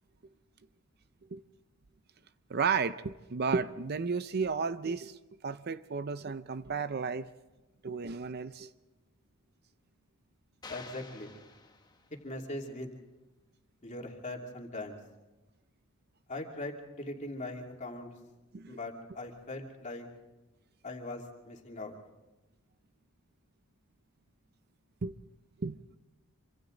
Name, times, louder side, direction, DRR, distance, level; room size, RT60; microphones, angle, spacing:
voice 1, 2.5-5.2 5.4-7.3 7.8-8.7 18.5-18.8 25.0-25.2 25.6-25.8, right 5 dB, 45° right, 13 dB, 0.6 m, -33 dB
sound 1, 10.6-12.4, left 4 dB, 20° left, 1.2 m, -50 dB
voice 2, 10.7-11.4 12.2-12.9 13.8-15.0 16.3-18.2 18.7-20.1 20.8-21.9, left 2 dB, 35° left, 1 dB, 2.7 m, -40 dB
26.5 x 25.5 x 3.9 m, 1.1 s
head